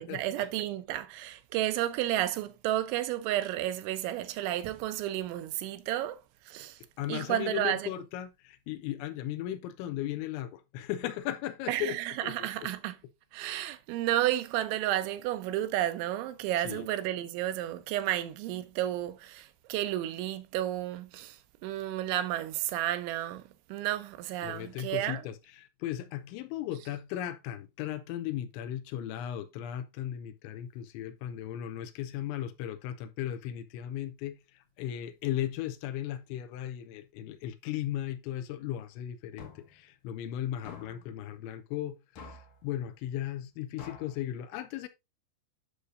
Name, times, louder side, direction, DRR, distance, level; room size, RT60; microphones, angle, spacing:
voice 1, 0.0-6.8 7.1-7.9 11.7-13.0 13.3-25.2, right 13 dB, 85° right, 3.1 m, -32 dB
voice 2, 7.0-12.0 12.2-12.5 16.6-16.9 24.4-44.9, left 12 dB, 85° left, 3.1 m, -36 dB
sound 1, 39.4-39.8 40.6-41.1 42.2-42.6 43.8-44.2, left 4 dB, 65° left, 2.0 m, -48 dB
9.8 x 6.6 x 2.5 m
omnidirectional pair, 5.3 m